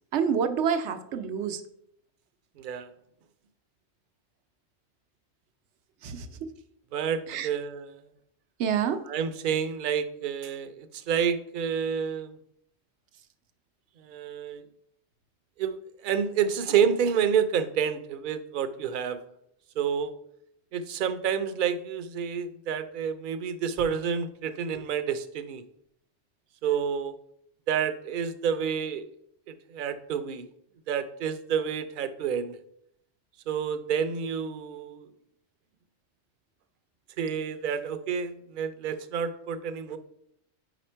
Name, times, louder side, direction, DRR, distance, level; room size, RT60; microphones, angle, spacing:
voice 1, 0.1-1.6 6.0-6.3 7.3-7.5 8.6-9.0, right 7 dB, 90° right, 9 dB, 0.9 m, -27 dB
voice 2, 2.6-2.9 6.9-8.0 9.1-12.3 14.0-14.6 15.6-15.8 16.0-19.2 19.8-20.1 20.7-25.6 26.6-27.1 27.7-29.0 29.7-30.5 30.9-32.6 33.5-35.1 37.2-40.0, right 7 dB, 60° right, 11 dB, 0.6 m, -29 dB
5.0 x 5.0 x 4.4 m, 0.73 s
omnidirectional pair, 1.1 m